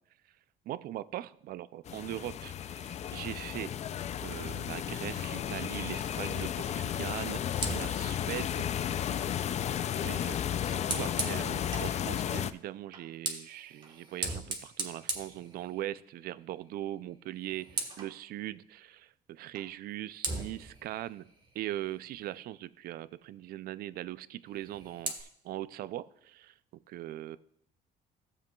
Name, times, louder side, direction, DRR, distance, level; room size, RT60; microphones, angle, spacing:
voice 1, 0.7-3.7 4.2-8.7 10.0-21.3 21.5-26.5 26.9-27.4, right 14 dB, 65° right, 17 dB, 0.4 m, -40 dB
sound 1, 1.9-12.5, left 10 dB, 40° left, 0.4 m, -33 dB
Fire, 7.5-12.0 12.9-16.1 16.5-16.8 17.1-18.2 19.6-19.7 20.2-22.5 24.4-25.2, right 3 dB, 25° right, 1.3 m, -40 dB
15.0 x 7.3 x 2.3 m, 0.72 s
cardioid pair, 110°, 17 cm